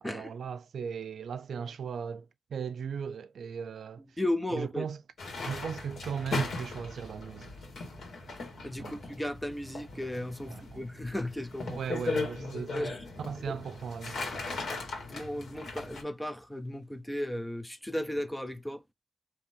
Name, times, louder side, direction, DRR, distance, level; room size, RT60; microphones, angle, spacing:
voice 1, 0.0-4.0 4.5-5.0 5.4-7.5 8.8-9.0 10.5-10.9 11.7-12.9 13.2-14.6, right 7 dB, 75° right, 0.3 m, -38 dB
voice 2, 4.2-4.8 8.6-11.8 12.7-13.0 13.5-13.6 15.0-18.8, left 1 dB, 5° left, 0.5 m, -35 dB
sound 1, 5.2-16.0, left 3 dB, 65° left, 1.6 m, -38 dB
3.6 x 2.8 x 4.2 m
wide cardioid pair, 170°, 0 cm